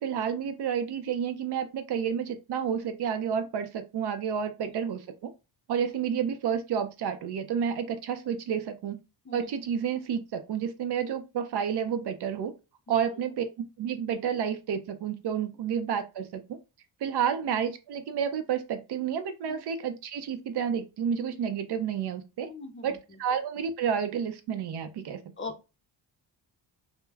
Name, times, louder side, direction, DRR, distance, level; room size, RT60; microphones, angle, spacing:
voice 1, 0.0-5.3 5.7-9.0 9.3-12.5 12.9-13.4 13.8-16.6 17.0-22.5 22.8-25.2, right 8 dB, 60° right, 0.6 m, -30 dB
voice 2, 22.4-22.9 25.4-25.7, left 3 dB, 25° left, 0.5 m, -40 dB
2.2 x 2.1 x 3.2 m
cardioid pair, 95°, 44 cm